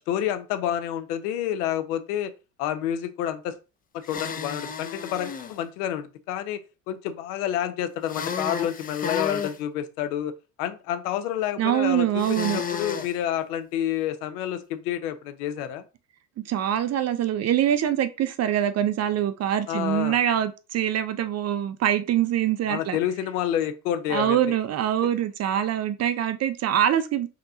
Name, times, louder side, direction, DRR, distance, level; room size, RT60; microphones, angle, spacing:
voice 1, 0.0-2.3 2.6-3.5 3.9-6.6 6.9-10.3 10.6-15.8 19.7-20.2 22.7-24.4, left 10 dB, 70° left, 0.8 m, -29 dB
sound 1, 4.0-5.5 8.1-9.6 12.2-13.1, left 6 dB, 20° left, 0.5 m, -32 dB
voice 2, 11.6-12.6 16.4-23.0 24.1-27.3, right 10 dB, 35° right, 0.5 m, -24 dB
5.2 x 2.9 x 2.7 m
hypercardioid pair, 70°, 48 cm